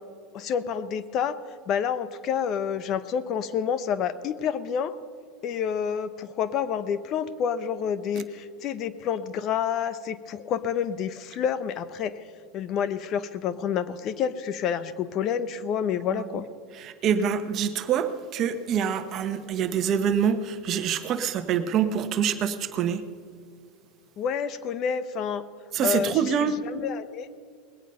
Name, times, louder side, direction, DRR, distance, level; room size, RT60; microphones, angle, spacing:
voice 1, 0.3-1.4 1.7-4.9 5.4-12.1 12.5-16.5 24.2-25.4 25.8-27.3, left 8 dB, 45° left, 15 dB, 0.7 m, -28 dB
voice 2, 16.8-23.0 25.7-26.6, right 8 dB, 40° right, 8 dB, 1.0 m, -26 dB
20.0 x 9.2 x 5.5 m, 2.1 s
supercardioid pair, 125°, 0 cm